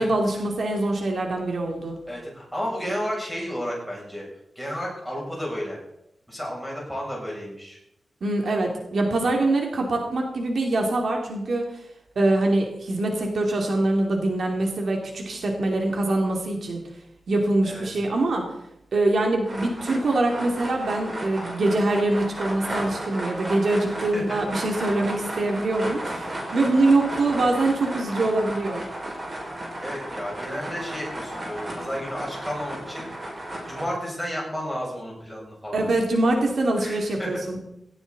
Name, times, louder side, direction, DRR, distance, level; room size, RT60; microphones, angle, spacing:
voice 1, 0.0-2.0 8.2-11.8 12.2-16.8 17.3-18.5 18.9-28.8 35.7-37.6, right 2 dB, 60° right, 1 dB, 2.8 m, -24 dB
voice 2, 2.1-4.2 4.6-5.8 6.3-7.8 17.6-17.9 24.1-24.4 24.7-24.9 29.8-33.1 33.7-35.8 36.8-37.3, equal, 5° right, -3 dB, 7.3 m, -32 dB
sound 1, 19.4-33.8, right 1 dB, 35° right, 5.4 m, -34 dB
18.0 x 17.0 x 4.1 m, 0.81 s
wide cardioid pair, 150°, 0 cm